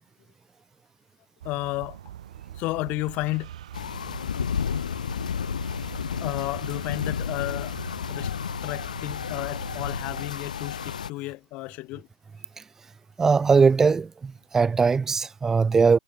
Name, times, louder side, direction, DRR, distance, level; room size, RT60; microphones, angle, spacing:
voice 1, 1.4-2.0 2.6-3.5 6.2-7.7 8.1-8.3 8.6-12.1, left 21 dB, 35° left, 1.0 m, -32 dB
sound 1, 1.4-10.2, right 11 dB, 60° right, 6.2 m, -42 dB
sound 2, 3.7-11.1, left 8 dB, 80° left, 0.4 m, -32 dB
voice 2, 13.2-16.0, right 5 dB, 10° right, 0.9 m, -20 dB
hypercardioid pair, 125°, 4 cm